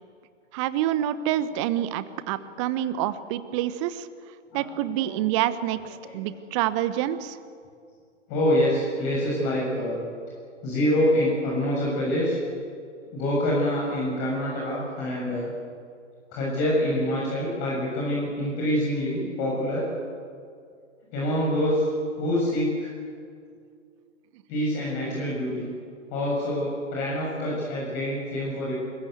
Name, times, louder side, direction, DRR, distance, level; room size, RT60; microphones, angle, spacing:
voice 1, 0.5-4.1 4.5-7.4, right 12 dB, 25° right, 14 dB, 1.1 m, -27 dB
voice 2, 4.5-5.2 5.8-5.9 6.2-6.3 8.3-10.0 10.6-12.4 13.1-15.5 16.3-19.9 21.1-21.9 22.2-22.9 24.5-25.7 26.1-28.7, left 1 dB, 25° left, -4 dB, 7.1 m, -26 dB
30.0 x 22.0 x 8.2 m, 2.3 s
figure-of-eight pair, 125°, 37 cm